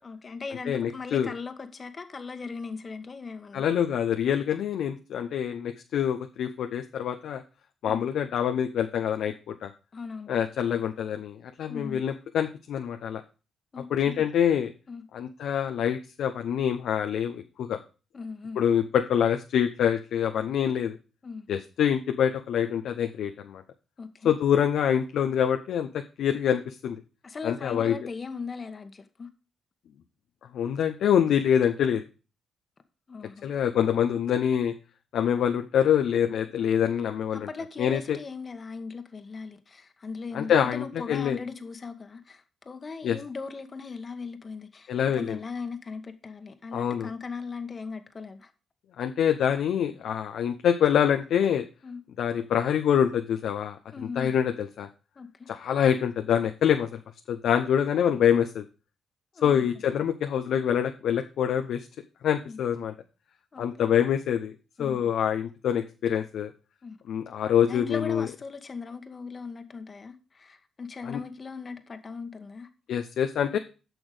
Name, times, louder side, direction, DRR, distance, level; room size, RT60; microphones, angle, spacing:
voice 1, 0.0-3.7 7.8-8.0 9.9-10.4 11.7-12.0 13.7-14.2 14.9-15.0 18.1-18.6 21.2-21.5 24.0-24.3 27.2-29.3 33.1-33.4 37.3-48.5 51.8-52.0 53.9-54.3 55.2-55.5 59.3-59.6 62.5-62.6 63.5-63.7 64.8-65.0 66.8-67.0 67.7-72.7, left 4 dB, 40° left, 1.4 m, -38 dB
voice 2, 0.7-1.3 3.5-7.4 7.8-9.7 10.3-13.2 13.9-14.7 15.1-17.8 18.6-21.0 21.5-23.6 24.2-27.0 27.4-27.9 30.5-32.0 33.4-34.7 35.1-37.5 37.8-38.2 40.3-41.4 43.0-43.2 44.9-45.4 46.7-47.1 49.0-51.7 52.2-53.8 54.2-54.9 55.5-57.0 57.3-58.6 59.4-61.9 62.2-62.9 63.6-64.5 64.8-66.5 67.1-68.3 71.0-71.2 72.9-73.6, left 9 dB, 70° left, 0.8 m, -25 dB
9.1 x 6.2 x 5.0 m
hypercardioid pair, 45°, 0 cm